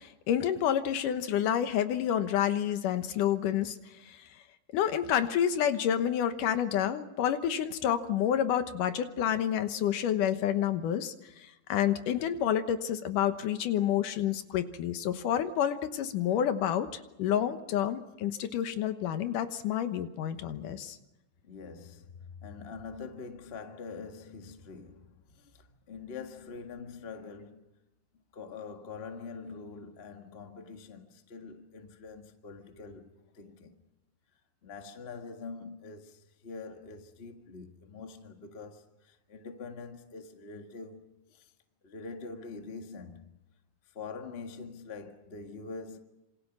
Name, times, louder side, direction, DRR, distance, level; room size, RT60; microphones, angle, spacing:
voice 1, 0.0-3.8 4.1-4.2 4.7-16.9 17.2-21.0, left 10 dB, 80° left, 2.7 m, -29 dB
voice 2, 21.4-27.7 28.3-33.7 34.6-41.5 41.8-43.3 43.8-46.0, left 4 dB, 25° left, 1.3 m, -44 dB
27.0 x 26.5 x 6.2 m
omnidirectional pair, 3.7 m